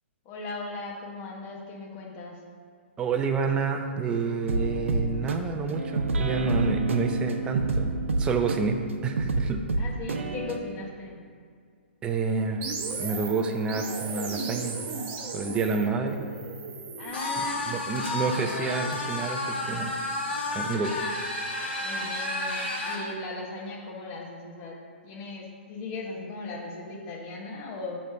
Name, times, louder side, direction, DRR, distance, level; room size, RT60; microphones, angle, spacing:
voice 1, 0.2-2.4 9.8-11.2 17.0-17.6 21.8-24.8 25.0-28.0, left 3 dB, 35° left, -1 dB, 1.1 m, -38 dB
voice 2, 3.0-9.6 12.0-14.8 15.3-16.3 17.7-19.9 20.5-21.0, right 4 dB, 15° right, 4 dB, 0.4 m, -29 dB
sound 1, 4.5-10.6, right 3 dB, 80° right, 0.6 m, -28 dB
sound 2, 12.6-17.7, right 4 dB, 30° right, 0.9 m, -36 dB
sound 3, 17.1-23.0, left 2 dB, 55° left, 1.6 m, -31 dB
6.6 x 3.2 x 5.7 m, 2.1 s
hypercardioid pair, 140°, 7 cm